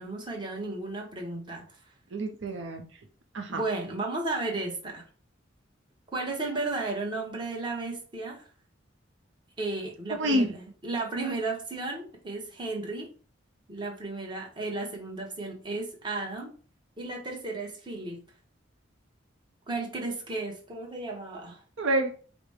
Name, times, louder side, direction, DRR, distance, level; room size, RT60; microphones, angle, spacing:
voice 1, 0.0-1.8 3.5-5.0 6.1-8.4 9.6-13.1 13.7-16.5 17.0-18.2 19.7-21.6, right 2 dB, 25° right, 1.0 m, -34 dB
voice 2, 2.1-2.9 3.3-3.6 10.2-10.5 21.8-22.1, right 1 dB, 75° right, 0.7 m, -27 dB
4.9 x 2.1 x 4.7 m
head